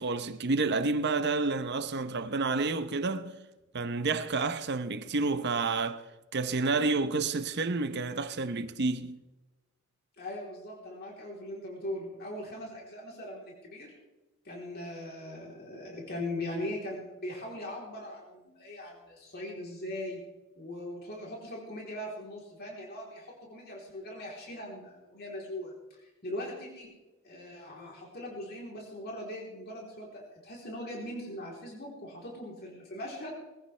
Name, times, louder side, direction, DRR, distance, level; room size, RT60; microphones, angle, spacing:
voice 1, 0.0-3.3 3.7-6.0 6.3-9.2, right 3 dB, 50° right, 0.8 m, -29 dB
voice 2, 10.2-13.9 14.4-20.2 20.6-26.9 27.2-33.3, left 1 dB, 50° left, 3.5 m, -40 dB
21.5 x 15.5 x 3.3 m
head